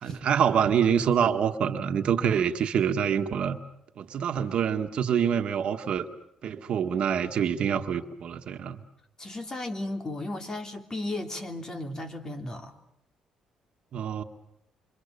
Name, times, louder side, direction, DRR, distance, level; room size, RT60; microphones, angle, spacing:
voice 1, 0.0-3.6 4.0-6.1 6.4-8.8 13.9-14.2, right 8 dB, 60° right, 6 dB, 1.7 m, -26 dB
voice 2, 9.2-12.7, left 2 dB, 30° left, 6 dB, 3.2 m, -35 dB
28.0 x 25.0 x 7.0 m, 0.77 s
cardioid pair, 85°, 2 cm